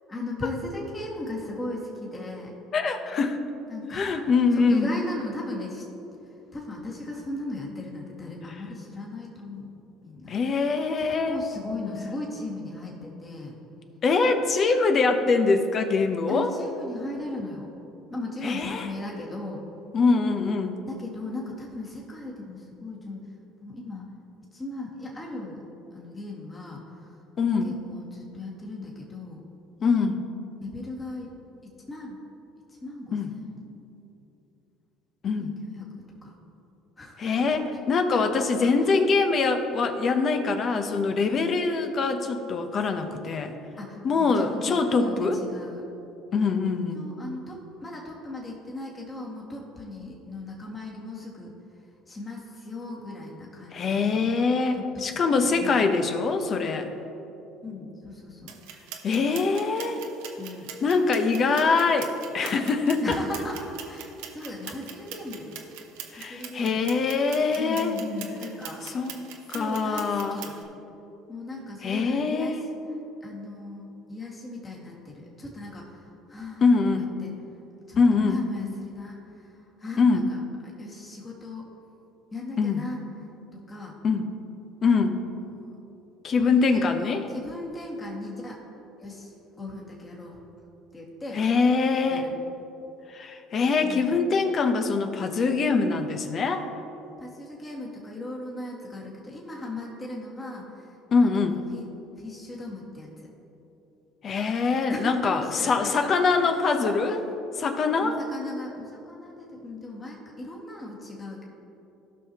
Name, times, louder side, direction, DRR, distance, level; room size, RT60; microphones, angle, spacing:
voice 1, 0.1-2.5 3.7-4.1 4.6-5.8 6.5-9.7 10.0-10.4 11.0-13.6 16.3-17.7 18.1-19.6 20.9-23.2 23.6-24.1 24.5-25.6 25.9-27.1 27.4-29.4 30.6-31.3 31.6-32.2 32.8-33.6 35.4-35.9 36.2-36.3 37.0-37.2 37.9-38.4 38.8-38.9 43.8-45.9 46.9-51.6 52.1-54.3 54.7-55.1 55.3-56.0 57.6-58.6 60.4-60.7 63.0-65.6 66.2-67.1 67.5-69.0 69.5-70.6 71.3-72.7 73.2-76.7 77.0-77.3 77.9-80.4 80.6-81.7 82.3-83.0 83.5-84.0 85.5-85.7 86.4-88.6 89.0-90.4 90.9-91.4 92.1-92.3 93.8-94.2 97.2-101.0 101.2-101.9 102.2-103.3 104.9-107.2 108.0-111.4, left 2 dB, 25° left, -3 dB, 1.9 m, -37 dB
voice 2, 2.7-3.4 3.8-4.9 10.3-11.4 11.9-12.0 14.0-16.5 18.4-18.9 19.9-20.8 27.4-27.7 29.8-30.2 33.1-33.3 35.2-35.5 37.2-43.5 44.0-45.4 46.3-47.1 53.7-56.9 59.0-60.0 60.8-63.2 66.1-67.9 68.8-69.2 69.5-70.5 71.8-72.7 76.6-77.1 78.0-78.4 80.0-80.3 82.6-82.8 84.0-84.3 84.8-85.2 86.2-87.2 91.3-92.3 93.1-96.6 101.1-101.6 104.2-107.2 107.6-108.2, left 4 dB, 45° left, 6 dB, 0.9 m, -24 dB
sound 1, 58.5-70.6, right 9 dB, 75° right, 0.8 m, -42 dB
16.0 x 5.8 x 3.0 m, 3.0 s
hypercardioid pair, 75°, 0 cm